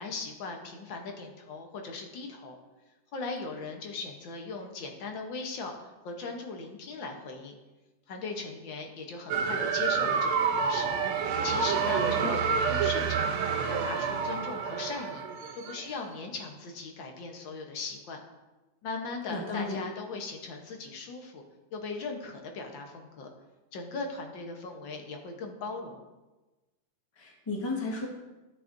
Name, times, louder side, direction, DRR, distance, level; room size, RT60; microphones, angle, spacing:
voice 1, 0.0-2.6 3.1-7.6 8.1-10.9 11.4-13.4 13.7-15.2 15.5-18.2 18.8-21.4 21.7-23.3 23.7-26.0, left 3 dB, 65° left, 3 dB, 1.7 m, -38 dB
sound 1, 9.3-15.9, right 6 dB, 85° right, 1.6 m, -28 dB
voice 2, 19.3-19.8 27.2-28.1, left 3 dB, 15° left, -2 dB, 1.3 m, -34 dB
13.0 x 6.6 x 2.6 m, 1.1 s
omnidirectional pair, 2.3 m